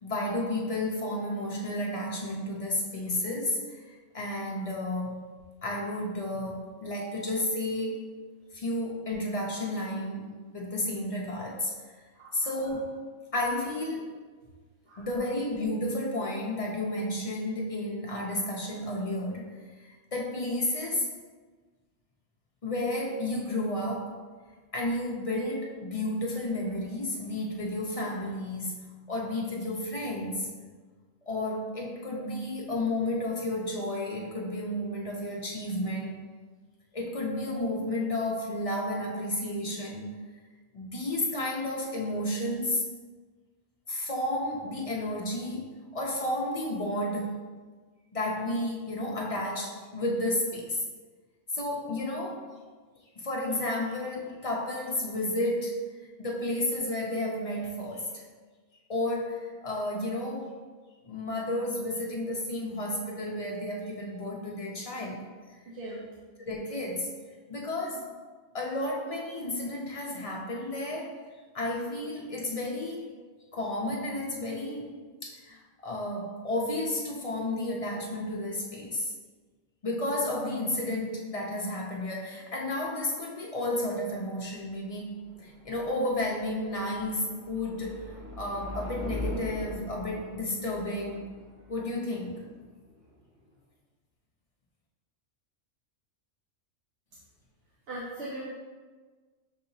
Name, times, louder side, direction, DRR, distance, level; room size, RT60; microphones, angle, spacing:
voice 1, 0.0-5.2 5.6-8.0 8.5-10.3 10.5-11.7 12.3-12.9 13.3-14.1 15.0-19.5 19.8-21.1 22.6-24.1 24.7-30.5 31.2-36.2 36.9-40.1 40.7-42.8 43.9-47.4 48.1-50.8 51.5-52.5 53.2-55.8 56.2-58.2 58.9-60.5 61.1-65.3 66.4-67.1 67.5-68.1 68.5-71.2 71.5-73.0 73.5-74.9 75.2-79.1 79.8-91.3 91.7-92.4, left 1 dB, 55° left, -2 dB, 0.3 m, -32 dB
voice 2, 12.2-12.5 14.9-15.1 65.7-66.0 97.9-98.4, right 1 dB, 65° right, -6 dB, 0.9 m, -39 dB
sound 1, 84.6-93.6, equal, 40° right, 0.8 m, -42 dB
6.4 x 2.8 x 2.6 m, 1.4 s
omnidirectional pair, 1.3 m